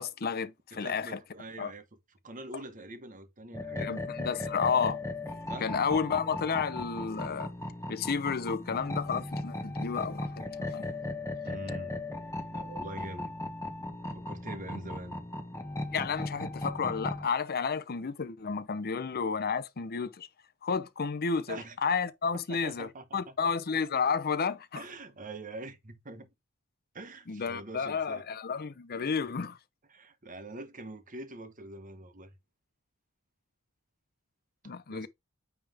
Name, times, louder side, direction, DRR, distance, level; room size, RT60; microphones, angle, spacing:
voice 1, 0.0-1.2 1.6-1.7 3.8-5.0 5.6-7.5 7.9-10.3 10.6-10.9 15.9-20.3 20.6-24.8 27.3-29.6 34.6-35.1, left 5 dB, 45° left, 0.7 m, -31 dB
voice 2, 0.8-1.8 2.2-4.0 5.5-5.7 11.4-12.0 12.5-13.3 14.1-15.2 21.5-21.8 22.5-23.3 24.7-26.3 26.9-28.3 29.9-32.3 34.9-35.1, right 2 dB, 40° right, 1.3 m, -44 dB
sound 1, 3.5-17.2, left 2 dB, 15° left, 1.2 m, -37 dB
9.1 x 3.5 x 3.5 m
head